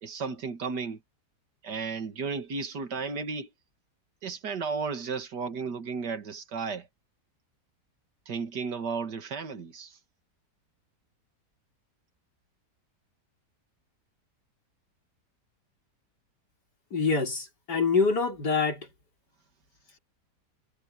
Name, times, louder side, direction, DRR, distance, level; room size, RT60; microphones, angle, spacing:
voice 1, 0.0-1.0 1.6-3.5 4.2-6.9 8.3-10.0, right 5 dB, 85° right, 2.4 m, -34 dB
voice 2, 16.9-18.9, left 4 dB, 80° left, 4.7 m, -25 dB
omnidirectional pair, 1.8 m